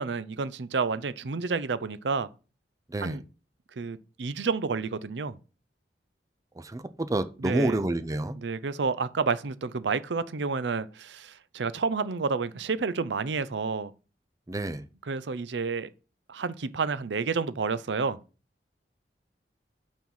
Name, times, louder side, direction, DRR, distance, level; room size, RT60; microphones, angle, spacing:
voice 1, 0.0-2.3 3.0-3.2 3.8-5.4 7.4-7.8 8.4-13.9 15.1-15.9 16.3-18.2, right 4 dB, 90° right, 0.6 m, -30 dB
voice 2, 6.6-8.4 14.5-14.8, right 1 dB, 20° right, 0.5 m, -29 dB
5.9 x 4.4 x 5.6 m
head